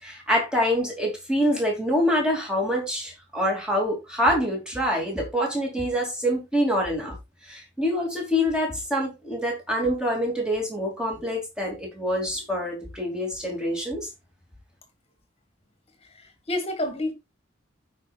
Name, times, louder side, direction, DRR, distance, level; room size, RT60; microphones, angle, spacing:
voice 1, 0.0-7.2 7.4-14.1, equal, 5° right, 2.7 m, -26 dB
voice 2, 16.0-17.1, left 1 dB, 30° left, 1.9 m, -29 dB
15.0 x 5.1 x 2.4 m
head